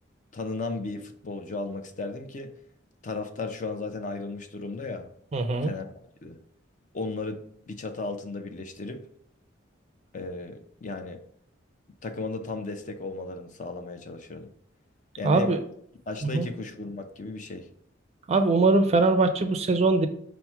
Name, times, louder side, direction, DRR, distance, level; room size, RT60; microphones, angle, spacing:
voice 1, 0.3-2.5 3.0-5.1 5.6-5.9 6.2-6.4 6.9-9.1 10.1-11.2 12.0-14.5 15.2-15.6 16.1-17.7, left 3 dB, 40° left, 7 dB, 0.5 m, -35 dB
voice 2, 5.3-5.7 15.2-15.6 16.2-16.5 18.3-20.1, right 3 dB, 35° right, 8 dB, 0.4 m, -22 dB
5.7 x 2.1 x 4.4 m, 0.66 s
head